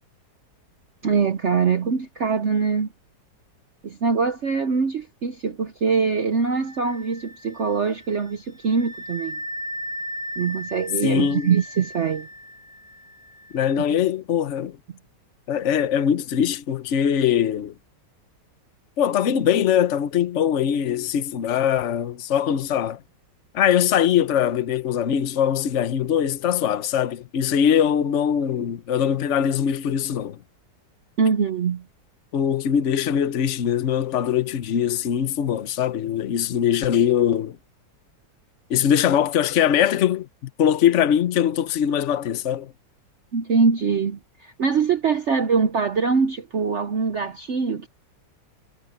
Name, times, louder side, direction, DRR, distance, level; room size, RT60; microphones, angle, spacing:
voice 1, 1.0-2.9 3.8-9.4 10.4-12.3 31.2-31.8 43.3-47.9, right 5 dB, 50° right, 1.0 m, -23 dB
Wind instrument woodwind instrument, 6.5-13.9, equal, 75° right, 4.5 m, -37 dB
voice 2, 11.0-11.5 13.5-14.8 15.5-17.7 19.0-23.0 23.5-30.4 32.3-37.6 38.7-42.7, left 9 dB, 50° left, 1.1 m, -22 dB
omnidirectional pair, 1.9 m